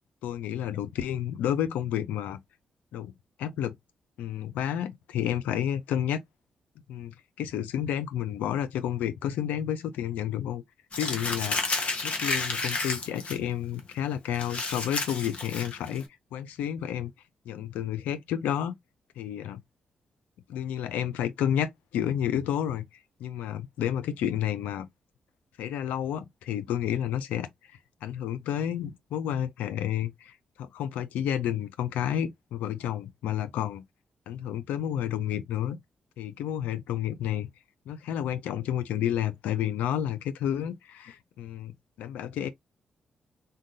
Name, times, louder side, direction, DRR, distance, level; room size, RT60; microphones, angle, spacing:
voice 1, 0.2-2.4 2.9-3.1 3.4-3.7 4.2-6.2 6.9-10.6 11.0-11.6 12.0-16.0 16.3-17.1 17.5-18.7 19.2-19.6 20.5-22.8 23.2-24.9 25.6-27.5 28.0-33.8 34.3-35.8 36.2-37.5 37.9-42.5, left 10 dB, 85° left, 0.5 m, -30 dB
Crumpling crinkling, 10.9-13.4 13.8-13.9 14.3-16.0, left 3 dB, 50° left, 1.1 m, -31 dB
3.8 x 2.2 x 2.6 m
supercardioid pair, 55°, 3 cm